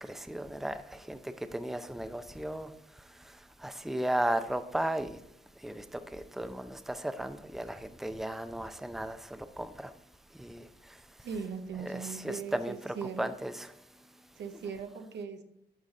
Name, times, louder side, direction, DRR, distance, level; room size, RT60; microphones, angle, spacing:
voice 1, 0.0-5.2 5.6-9.9 10.3-11.1 11.8-13.7, right 1 dB, ahead, 0.6 m, -36 dB
voice 2, 11.2-13.3 14.4-15.4, right 6 dB, 85° right, 0.8 m, -39 dB
11.5 x 4.0 x 3.7 m
cardioid pair, 70°, 17 cm